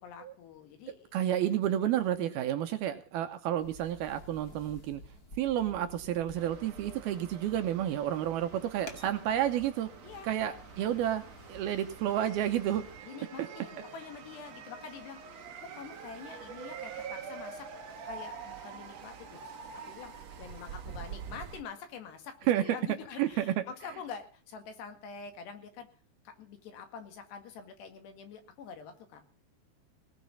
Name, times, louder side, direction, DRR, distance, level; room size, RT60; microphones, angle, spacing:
voice 1, 0.0-1.1 10.0-10.3 13.0-25.9 26.3-29.2, left 6 dB, 75° left, 7 dB, 4.0 m, -46 dB
voice 2, 1.1-5.0 5.4-9.9 10.2-11.2 11.5-12.8 22.5-22.6 23.2-23.6, right 11 dB, 75° right, 8 dB, 2.5 m, -30 dB
sound 1, 3.6-13.0, equal, 30° left, 1.7 m, -52 dB
sound 2, 6.3-21.6, right 6 dB, 50° right, 2.2 m, -46 dB
18.5 x 6.1 x 9.8 m, 0.42 s
omnidirectional pair, 5.0 m